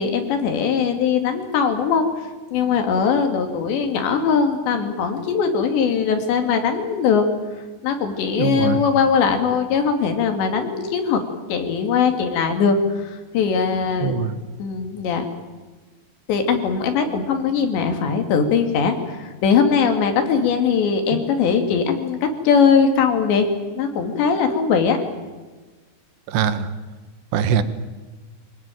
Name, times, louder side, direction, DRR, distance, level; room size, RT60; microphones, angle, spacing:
voice 1, 0.0-7.3 7.8-11.2 11.5-14.2 14.6-15.3 16.3-23.5 23.8-25.0, left 6 dB, 85° left, 5 dB, 4.6 m, -20 dB
voice 2, 8.4-8.8 14.0-14.4 21.1-21.2 26.3-26.7 27.3-27.6, right 8 dB, 80° right, 11 dB, 3.4 m, -22 dB
26.5 x 18.5 x 9.1 m, 1.3 s
omnidirectional pair, 5.0 m